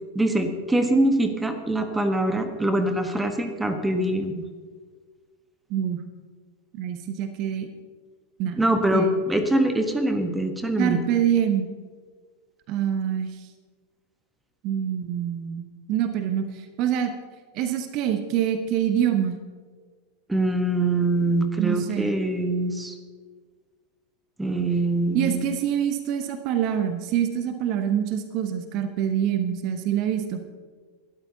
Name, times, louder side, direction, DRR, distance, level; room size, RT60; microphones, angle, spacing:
voice 1, 0.1-4.4 8.6-11.0 20.3-22.9 24.4-25.4, right 1 dB, 10° right, 7 dB, 1.3 m, -23 dB
voice 2, 5.7-6.0 6.7-7.7 8.4-8.6 8.9-9.1 10.8-11.7 12.7-13.5 14.6-17.1 17.5-19.4 21.6-22.1 25.1-30.5, right 9 dB, 40° right, 9 dB, 1.0 m, -25 dB
21.0 x 12.5 x 2.8 m, 1.5 s
figure-of-eight pair, 85°, 0 cm